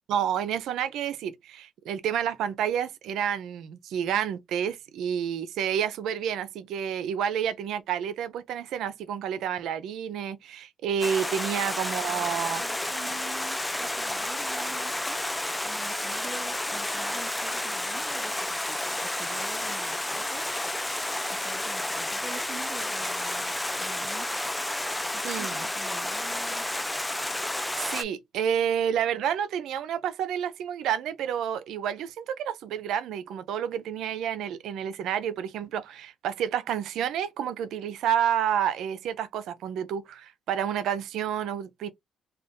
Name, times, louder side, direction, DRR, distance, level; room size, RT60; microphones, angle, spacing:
voice 1, 0.1-12.6 25.2-25.7 27.8-41.9, right 9 dB, 80° right, 0.5 m, -29 dB
Stream, 11.0-28.0, left 1 dB, 10° left, 0.3 m, -31 dB
voice 2, 12.1-15.2 15.6-20.5 21.3-24.3 25.1-26.7, right 4 dB, 30° right, 0.8 m, -46 dB
2.5 x 2.3 x 3.6 m
cardioid pair, 90°, 0 cm